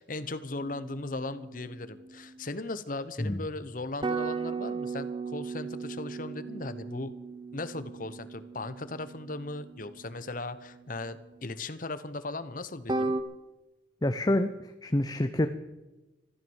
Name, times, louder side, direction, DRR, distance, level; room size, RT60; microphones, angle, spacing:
voice 1, 0.0-7.1 7.5-13.2, left 2 dB, 45° left, 12 dB, 0.9 m, -37 dB
sound 1, 0.6-2.5 4.0-11.1 12.9-13.2, right 4 dB, 25° right, 0.9 m, -37 dB
voice 2, 14.0-14.5 14.8-15.5, left 1 dB, 20° left, 9 dB, 0.6 m, -26 dB
14.0 x 12.5 x 7.2 m, 1.1 s
head